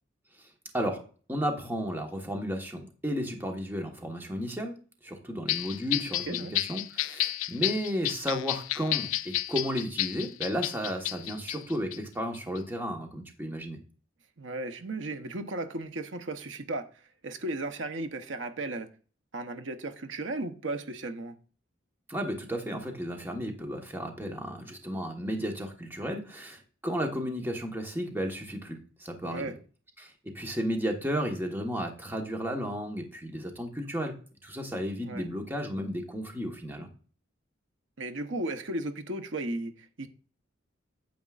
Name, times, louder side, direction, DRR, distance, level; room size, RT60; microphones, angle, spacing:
voice 1, 1.3-4.8 5.0-13.8 22.1-29.5 30.0-34.1 34.4-36.9, equal, 10° right, 1.2 m, -33 dB
sound 1, 5.5-12.0 12.3-12.6, left 16 dB, 85° left, 0.3 m, -31 dB
voice 2, 6.3-6.6 14.4-16.9 17.2-18.9 19.3-21.4 29.2-29.6 35.0-35.3 38.0-40.1, right 2 dB, 75° right, 0.9 m, -35 dB
9.4 x 7.3 x 2.4 m
head